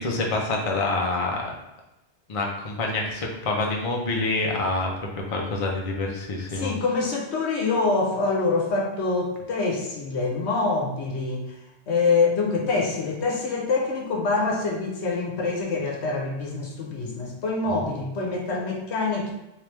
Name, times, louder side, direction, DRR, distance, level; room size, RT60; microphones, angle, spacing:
voice 1, 0.0-1.5 2.3-4.9 5.2-6.7 17.7-17.8, left 2 dB, 40° left, 0 dB, 0.6 m, -27 dB
voice 2, 6.5-11.6 11.9-19.3, left 3 dB, 70° left, -1 dB, 1.1 m, -25 dB
3.3 x 3.1 x 3.4 m, 0.93 s
omnidirectional pair, 1.2 m